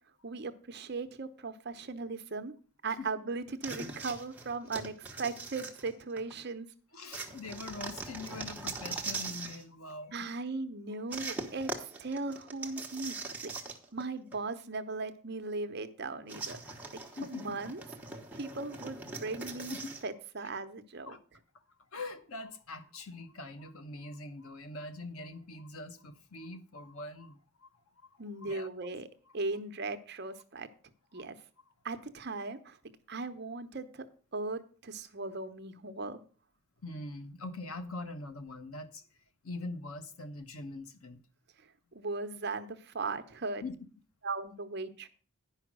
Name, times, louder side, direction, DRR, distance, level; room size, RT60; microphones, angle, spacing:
voice 1, 0.2-2.5 2.8-6.7 10.1-13.5 13.9-16.7 17.2-17.8 18.3-19.7 20.0-21.2 28.2-29.1 29.3-30.7 31.1-31.4 31.8-32.8 33.1-34.0 34.3-36.2 41.6-43.6 44.2-45.1, right 3 dB, 50° right, 0.8 m, -38 dB
sound 1, 3.6-6.3 7.1-9.6 11.1-14.0 14.3-14.4 16.3-20.1, right 3 dB, 5° right, 1.1 m, -41 dB
voice 2, 6.9-10.3 17.2-17.6 19.7-19.9 21.1-21.2 21.9-27.7 28.4-28.7 31.1-31.2 36.8-39.0 39.4-41.2 43.6-43.7, left 2 dB, 80° left, 1.0 m, -43 dB
10.0 x 5.7 x 6.2 m
head